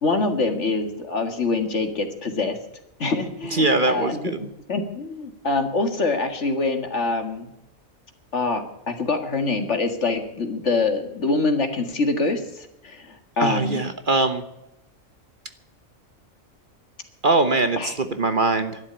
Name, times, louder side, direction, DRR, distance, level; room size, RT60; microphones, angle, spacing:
voice 1, 0.0-2.6 3.0-4.4 4.7-7.5 8.3-13.8 17.8-17.9, left 3 dB, 60° left, 7 dB, 2.1 m, -25 dB
voice 2, 3.5-4.5 13.4-14.4 17.2-18.8, right 2 dB, 40° right, 9 dB, 1.2 m, -22 dB
12.5 x 11.0 x 9.7 m, 0.88 s
omnidirectional pair, 1.4 m